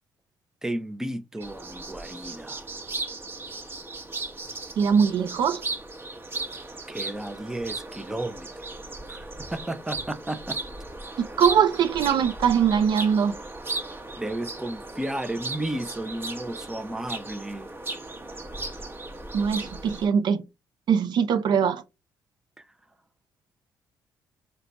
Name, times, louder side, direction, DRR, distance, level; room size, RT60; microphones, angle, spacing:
voice 1, 0.6-2.7 6.9-8.7 9.1-10.6 14.2-17.7 18.3-18.4 22.6-22.7, right 1 dB, 5° right, 0.5 m, -33 dB
sound 1, 1.4-20.1, right 3 dB, 25° right, 1.0 m, -36 dB
voice 2, 4.8-5.6 11.2-13.3 19.3-20.4 20.9-21.8, right 7 dB, 60° right, 0.5 m, -22 dB
4.3 x 2.2 x 4.0 m
cardioid pair, 75°, 8 cm